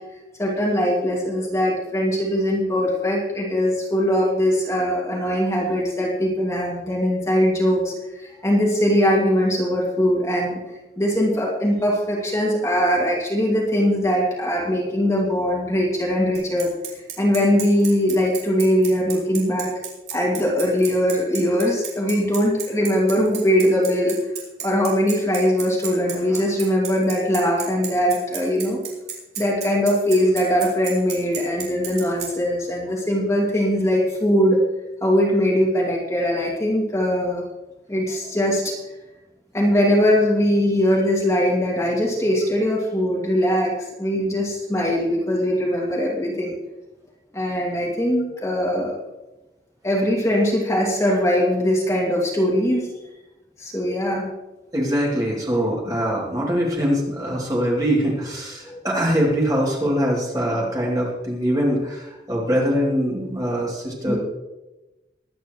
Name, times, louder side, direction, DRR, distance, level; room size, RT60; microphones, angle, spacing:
voice 1, 0.4-7.9 8.2-10.6 11.0-16.7 17.2-19.7 20.1-24.2 24.6-28.8 29.4-34.6 35.0-37.4 37.9-38.8 39.5-46.5 47.3-49.0 49.8-52.9 53.6-54.2 58.7-58.8 64.0-64.2, equal, 15° left, -3 dB, 2.4 m, -21 dB
Bicycle, 16.3-32.3, right 9 dB, 70° right, 3.9 m, -32 dB
voice 2, 54.7-64.2, equal, 20° right, -4 dB, 2.9 m, -23 dB
22.5 x 9.2 x 3.1 m, 1.0 s
head